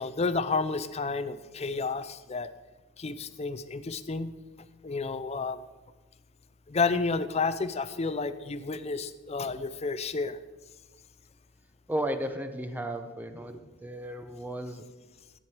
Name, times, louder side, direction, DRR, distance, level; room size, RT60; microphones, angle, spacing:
voice 1, 0.0-2.5 3.0-4.3 4.8-5.6 6.7-10.4, left 4 dB, 30° left, 13 dB, 0.5 m, -31 dB
voice 2, 11.9-14.9, right 1 dB, 10° right, 8 dB, 0.7 m, -34 dB
13.5 x 8.9 x 4.8 m, 1.2 s
head